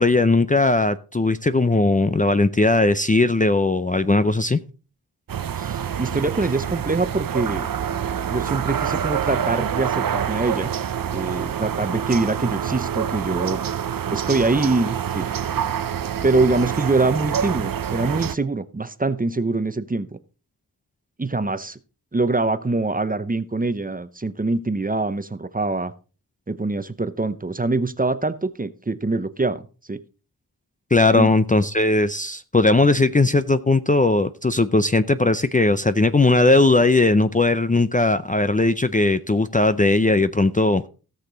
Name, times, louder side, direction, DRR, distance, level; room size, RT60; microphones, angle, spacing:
voice 1, 0.0-4.6 30.9-40.9, left 2 dB, 20° left, 12 dB, 0.5 m, -18 dB
sound 1, 5.3-18.3, right 9 dB, 60° right, 0.6 m, -26 dB
voice 2, 5.6-7.7 8.3-10.7 11.1-13.6 14.1-15.3 16.2-20.1 21.2-21.8 22.1-25.9 26.5-29.6 29.9-30.0 31.1-31.3, right 3 dB, 20° right, 13 dB, 0.7 m, -24 dB
16.5 x 6.6 x 3.9 m, 0.35 s
wide cardioid pair, 85°, 39 cm